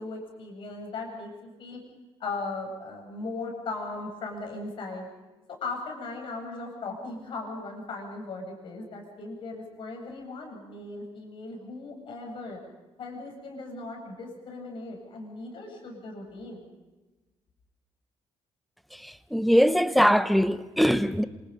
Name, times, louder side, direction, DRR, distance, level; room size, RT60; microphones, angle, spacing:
voice 1, 0.0-1.8 2.2-5.1 5.5-12.6 13.0-16.6, left 3 dB, 55° left, 7.6 m, -38 dB
voice 2, 19.0-21.2, equal, ahead, 0.9 m, -22 dB
27.5 x 26.5 x 5.5 m
cardioid pair, 180°, 10 cm